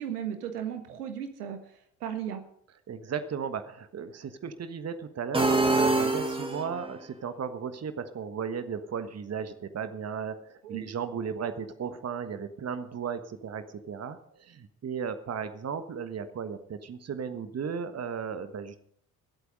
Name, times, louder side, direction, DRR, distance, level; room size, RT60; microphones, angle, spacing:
voice 1, 0.0-2.4 10.6-10.9, right 9 dB, 75° right, 8 dB, 1.5 m, -36 dB
voice 2, 2.9-18.8, right 6 dB, 35° right, 10 dB, 1.4 m, -35 dB
sound 1, 5.3-6.9, right 2 dB, 10° right, 2.6 m, -25 dB
22.5 x 8.4 x 5.3 m, 0.66 s
figure-of-eight pair, 50°, 46 cm